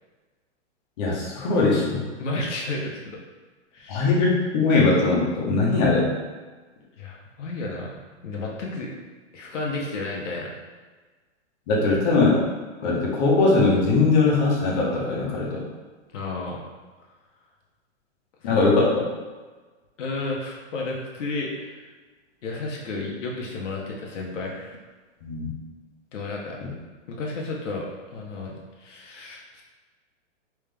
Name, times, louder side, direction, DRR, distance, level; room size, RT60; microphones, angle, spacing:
voice 1, 1.0-2.0 3.9-6.1 11.7-12.4 12.8-15.6 18.4-19.0 25.2-25.5, left 3 dB, 35° left, -5 dB, 1.0 m, -20 dB
voice 2, 2.2-3.2 3.7-4.1 7.0-7.9 8.2-8.9 9.3-10.5 16.1-16.6 18.4-18.6 20.0-21.8 22.4-24.8 26.1-26.6 27.1-27.9 28.1-29.6, left 2 dB, 75° left, -2 dB, 1.0 m, -32 dB
3.5 x 3.2 x 3.3 m, 1.3 s
hypercardioid pair, 160°, 37 cm